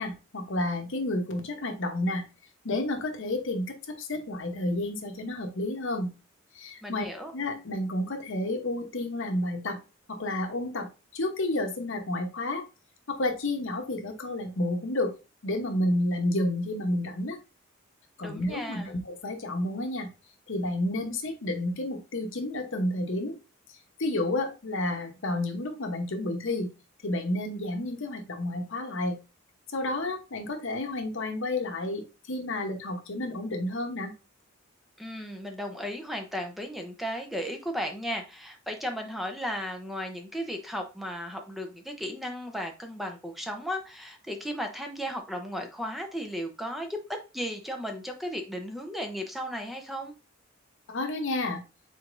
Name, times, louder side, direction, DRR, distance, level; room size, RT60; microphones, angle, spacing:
voice 1, 0.0-2.2 2.6-6.1 6.5-7.0 7.3-9.8 10.1-12.6 13.1-15.2 15.4-17.4 18.2-20.1 20.5-23.4 23.7-26.7 27.0-29.2 29.7-34.1 50.9-51.6, left 1 dB, 65° left, 5 dB, 0.9 m, -30 dB
voice 2, 6.8-7.3 18.2-18.9 35.0-50.1, equal, ahead, 3 dB, 0.7 m, -35 dB
4.9 x 4.1 x 2.6 m, 0.29 s
head